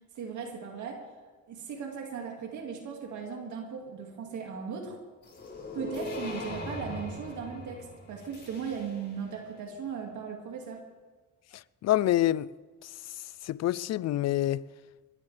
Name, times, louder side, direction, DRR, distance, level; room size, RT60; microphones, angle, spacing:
voice 1, 0.1-1.0 1.5-5.0 5.7-10.8, right 6 dB, 75° right, 2.2 m, -37 dB
sound 1, 5.2-9.3, left 2 dB, 35° left, 5.6 m, -40 dB
voice 2, 11.5-12.5 12.8-12.9 13.4-14.6, left 13 dB, 60° left, 0.5 m, -27 dB
21.5 x 15.0 x 3.4 m
cardioid pair, 90°, 30 cm